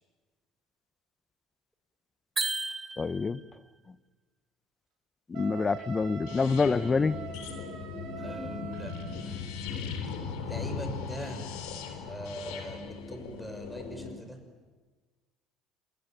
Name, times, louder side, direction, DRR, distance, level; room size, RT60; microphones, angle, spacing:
sound 1, 2.3-3.5, right 3 dB, 25° right, 2.6 m, -33 dB
voice 1, 3.0-3.4 5.3-7.2, left 4 dB, 30° left, 1.0 m, -26 dB
Wind instrument woodwind instrument, 5.3-9.3, right 7 dB, 60° right, 6.7 m, -44 dB
sound 2, 6.3-14.1, left 5 dB, 70° left, 4.0 m, -38 dB
voice 2, 8.2-8.9 9.2-9.5 10.4-11.5 11.8-14.4, equal, ahead, 6.4 m, -42 dB
28.0 x 20.5 x 9.2 m
hypercardioid pair, 70°, 0 cm